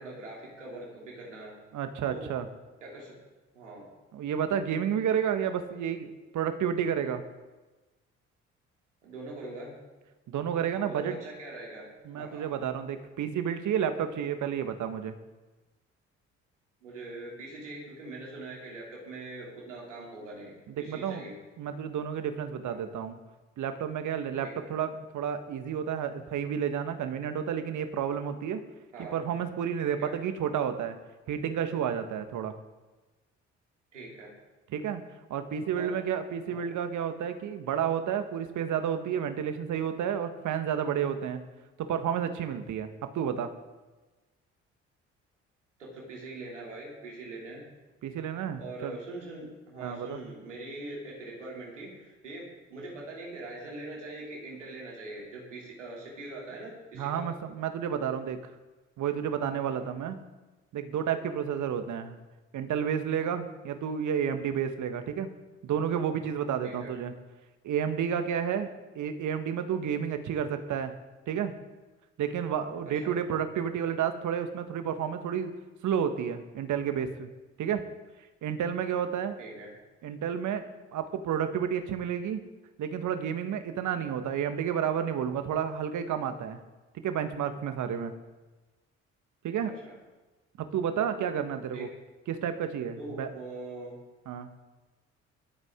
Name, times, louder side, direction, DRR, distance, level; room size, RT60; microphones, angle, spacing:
voice 1, 0.0-1.6 2.1-2.3 2.8-3.2 3.5-3.9 9.0-9.8 10.9-11.9 12.1-12.5 16.8-21.4 22.6-22.8 24.4-24.7 28.9-29.2 30.0-30.1 33.9-34.3 35.7-35.9 36.5-36.6 45.8-47.7 48.6-57.3 59.7-59.9 66.6-66.9 72.8-73.2 79.4-79.7 89.6-89.9 91.7-91.9 93.0-94.0, right 2 dB, 85° right, -3 dB, 3.0 m, -42 dB
voice 2, 1.7-2.5 4.1-7.2 10.3-11.2 12.0-15.1 20.9-21.3 21.6-23.2 23.6-28.6 29.0-31.0 31.3-32.5 34.7-35.0 35.3-41.4 41.8-43.5 48.0-49.0 49.8-50.2 57.0-58.4 59.0-60.2 60.7-62.2 62.5-65.3 65.6-67.1 67.6-68.7 68.9-70.9 71.3-71.5 72.2-75.5 75.8-77.3 77.6-77.8 78.4-79.4 80.0-80.7 80.9-82.4 82.8-86.6 86.9-88.1 89.4-89.7 90.6-91.9 92.3-93.3 94.3-94.5, right 8 dB, 55° right, 8 dB, 1.5 m, -31 dB
23.0 x 8.1 x 3.8 m, 1.2 s
figure-of-eight pair, 45°, 35 cm